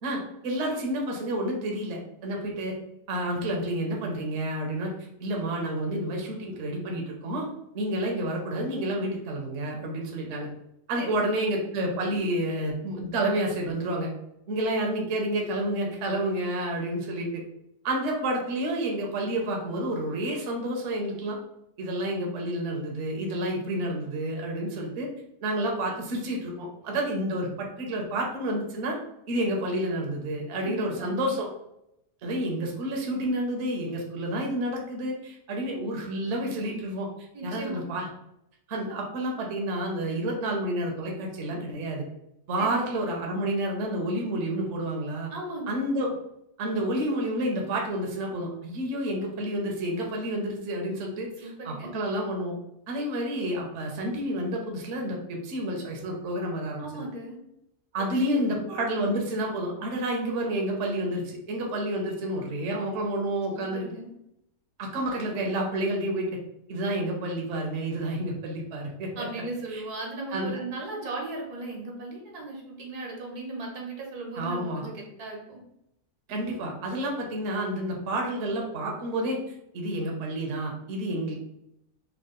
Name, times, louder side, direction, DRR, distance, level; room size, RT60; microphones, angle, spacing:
voice 1, 0.0-2.7 3.1-4.9 5.2-7.5 7.7-10.5 10.9-14.1 14.5-17.4 17.8-21.4 21.8-25.1 25.4-29.0 29.3-31.5 32.2-37.1 37.4-38.1 38.7-42.0 42.5-45.3 45.7-46.1 46.6-52.5 52.9-57.0 57.9-63.9 64.8-66.3 66.7-69.1 69.7-69.8 70.3-70.6 74.4-74.9 76.3-79.4 79.7-81.3, right 1 dB, 55° right, 0 dB, 0.9 m, -29 dB
voice 2, 10.9-11.4 30.6-31.3 37.3-37.9 42.6-43.0 45.3-45.9 51.4-52.0 56.8-57.4 58.0-58.6 63.5-64.1 69.2-75.6, right 2 dB, 75° right, 0 dB, 1.4 m, -37 dB
3.6 x 2.3 x 3.6 m, 0.79 s
omnidirectional pair, 1.7 m